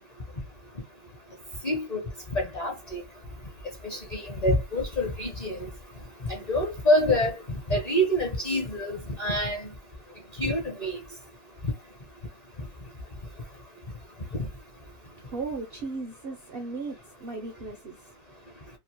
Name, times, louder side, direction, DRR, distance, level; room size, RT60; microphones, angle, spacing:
voice 1, 1.6-2.0 2.3-3.0 3.8-5.6 6.2-9.7 10.4-11.0 11.6-11.7, equal, 35° left, 0.7 m, -26 dB
voice 2, 14.9-18.8, right 3 dB, 60° right, 0.6 m, -37 dB
2.8 x 2.5 x 2.9 m
omnidirectional pair, 1.6 m